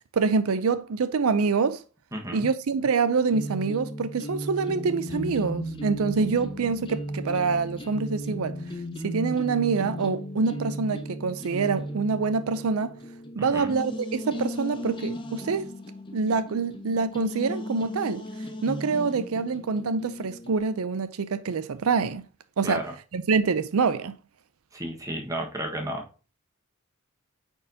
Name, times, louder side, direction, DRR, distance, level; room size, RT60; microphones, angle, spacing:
voice 1, 0.1-1.8 2.3-8.6 9.0-12.9 13.4-15.7 16.1-18.2 18.6-22.2 22.6-22.9 23.1-24.1, right 4 dB, 85° right, 0.5 m, -26 dB
voice 2, 2.1-2.5 13.4-13.7 22.6-22.9 24.7-26.0, right 1 dB, 15° right, 1.4 m, -32 dB
sound 1, 3.3-20.6, equal, 25° left, 0.8 m, -36 dB
sound 2, 5.1-9.3, right 5 dB, 55° right, 1.6 m, -43 dB
8.6 x 4.4 x 2.8 m
head